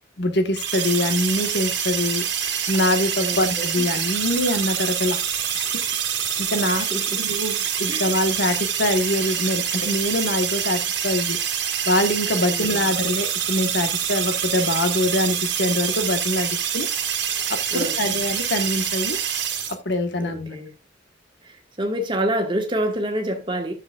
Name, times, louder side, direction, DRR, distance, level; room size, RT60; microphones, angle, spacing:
voice 1, 0.2-2.2 2.7-5.2 5.5-5.6 6.4-6.9 7.2-11.4 11.8-16.9 17.5-19.2 19.7-20.6, left 1 dB, 65° left, 1.4 m, -24 dB
sound 1, 0.6-19.8, right 9 dB, 80° right, 2.1 m, -26 dB
voice 2, 3.2-3.8 6.7-7.2 7.9-8.0 12.5-12.8 17.7-18.2 20.2-20.7 21.4-23.7, right 1 dB, 25° right, 1.6 m, -27 dB
12.0 x 6.9 x 2.4 m
head